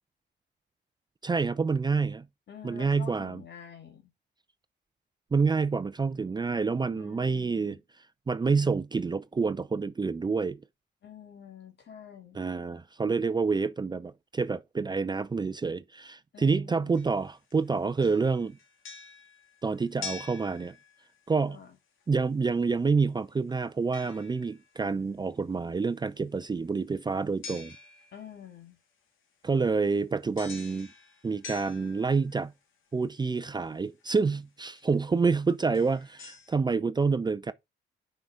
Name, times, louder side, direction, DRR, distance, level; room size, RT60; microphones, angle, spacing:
voice 1, 1.2-2.2 2.6-3.4 5.3-7.8 8.3-10.6 12.3-18.6 19.6-20.7 21.3-21.6 22.1-27.7 29.4-30.9 31.2-32.5 32.9-37.5, right 4 dB, 20° right, 0.5 m, -28 dB
voice 2, 2.5-4.1 6.9-7.8 11.0-12.4 16.3-17.2 21.5-21.8 28.1-28.8, left 8 dB, 60° left, 2.7 m, -48 dB
sound 1, 16.9-17.6 18.0-21.3 23.9-24.8 27.4-28.4 30.4-32.5 34.0-34.1 34.8-34.9 35.6-36.5, left 5 dB, 80° left, 2.2 m, -46 dB
5.9 x 5.7 x 5.1 m
cardioid pair, 90°, 20 cm